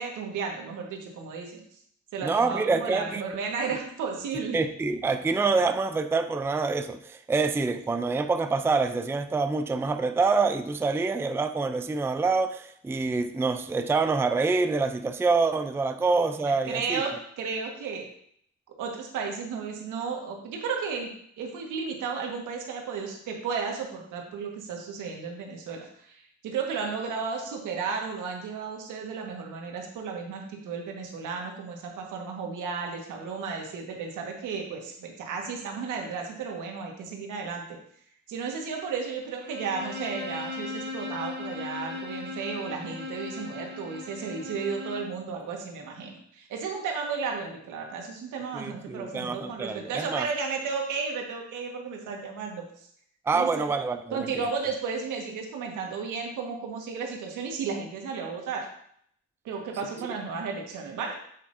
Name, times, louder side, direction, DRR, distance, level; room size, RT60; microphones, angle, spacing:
voice 1, 0.0-1.6 2.1-4.6 16.6-17.1 17.4-18.1 18.8-37.8 38.3-52.9 53.3-53.7 54.1-58.7 59.4-61.1, right 5 dB, 85° right, 1 dB, 1.6 m, -33 dB
voice 2, 2.2-3.2 4.5-17.0 48.5-50.3 53.3-54.3, right 4 dB, 10° right, 9 dB, 0.4 m, -26 dB
Bowed string instrument, 39.4-45.2, left 2 dB, 35° right, 1.2 m, -37 dB
7.6 x 6.9 x 2.7 m, 0.67 s
cardioid pair, 90°, 30 cm